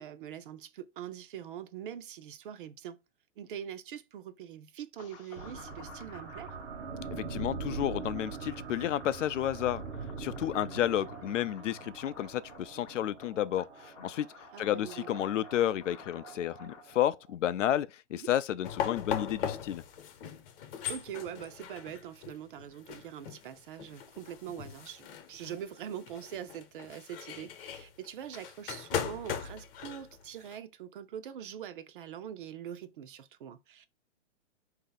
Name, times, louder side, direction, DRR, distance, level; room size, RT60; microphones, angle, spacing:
voice 1, 0.0-3.0 3.4-6.6 14.5-15.1 18.1-18.3 20.9-33.9, right 9 dB, 45° right, 0.5 m, -43 dB
sound 1, 5.0-16.8, left 8 dB, 30° left, 0.6 m, -54 dB
sound 2, 5.4-17.3, right 4 dB, 70° right, 1.1 m, -43 dB
voice 2, 7.1-9.8 10.2-14.3 14.6-19.8, left 12 dB, 85° left, 0.5 m, -31 dB
sound 3, 18.6-30.6, left 8 dB, 50° left, 0.9 m, -39 dB
4.2 x 2.8 x 3.8 m
hypercardioid pair, 150°, 36 cm